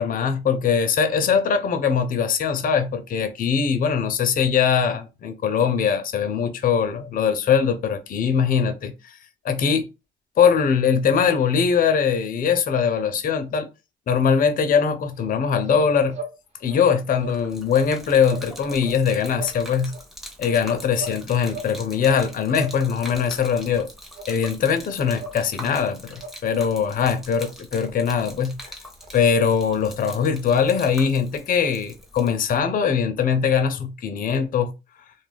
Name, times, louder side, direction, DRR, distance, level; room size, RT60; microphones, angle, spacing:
voice 1, 0.0-9.2 9.4-9.9 10.4-13.7 14.1-16.2 16.6-19.9 20.4-23.9 24.3-28.6 29.1-34.7, left 6 dB, 45° left, 0.5 m, -21 dB
sound 1, 15.1-15.3 15.6-16.3 16.6-16.8 17.1-17.4 17.7-17.9 18.2-18.5 18.8-19.0 19.3-19.6 19.8-20.0 20.4-21.2 21.4-22.2 22.5-22.8 23.0-23.3 23.6-23.7 24.1-24.3 24.6-24.8 25.1-25.4 25.7-25.9 26.1-26.7 27.0-27.1 27.4-27.5 27.8-27.9 28.2-28.3 28.6-28.7 29.0-29.1 29.4-29.5 29.8-29.9 30.2-30.3 30.6-30.7 31.0-31.1, right 2 dB, 35° right, 0.9 m, -39 dB
Gurgling / Liquid, 17.1-32.6, equal, ahead, 0.6 m, -43 dB
2.2 x 2.0 x 3.3 m
cardioid pair, 90°, 20 cm